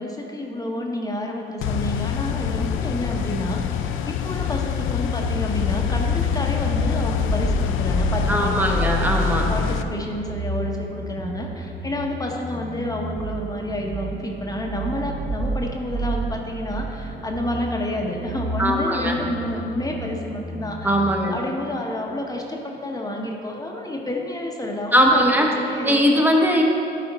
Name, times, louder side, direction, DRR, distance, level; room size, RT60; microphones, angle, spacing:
voice 1, 0.0-9.0 9.5-20.9 21.3-26.2, left 1 dB, 20° left, 0 dB, 0.9 m, -29 dB
sound 1, 1.6-9.8, left 8 dB, 85° left, 0.4 m, -25 dB
sound 2, 5.2-21.1, right 3 dB, 40° right, 0.8 m, -32 dB
voice 2, 8.3-9.5 18.6-19.1 20.8-21.4 24.9-25.5 25.8-26.6, equal, 10° right, 1 dB, 1.0 m, -19 dB
11.0 x 4.2 x 4.1 m, 2.7 s
cardioid pair, 90°, 20 cm